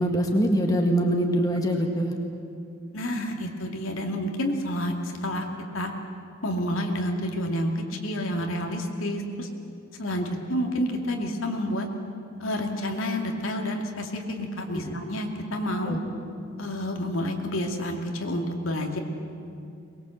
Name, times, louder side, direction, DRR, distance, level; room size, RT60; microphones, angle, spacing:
voice 1, 0.0-2.1 14.7-14.9 15.9-16.0, equal, 15° left, 2 dB, 1.9 m, -24 dB
voice 2, 2.9-5.5 5.7-5.9 6.4-9.5 10.0-11.9 12.4-16.0 16.6-19.0, equal, 75° left, 2 dB, 2.5 m, -29 dB
23.0 x 21.0 x 7.8 m, 2.5 s
head